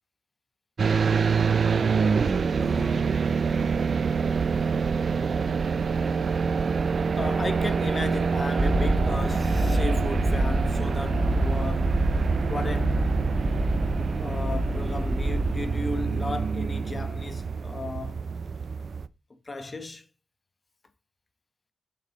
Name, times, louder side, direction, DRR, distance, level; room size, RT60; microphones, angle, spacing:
sound 1, 0.8-19.1, right 5 dB, 55° right, 0.4 m, -26 dB
voice 1, 2.6-3.4 7.2-12.0 12.5-13.1 14.2-18.3 19.4-20.0, left 2 dB, 30° left, 0.9 m, -35 dB
sound 2, 8.6-16.9, right 1 dB, 10° right, 1.6 m, -27 dB
7.3 x 3.8 x 4.1 m
cardioid pair, 100°, 0 cm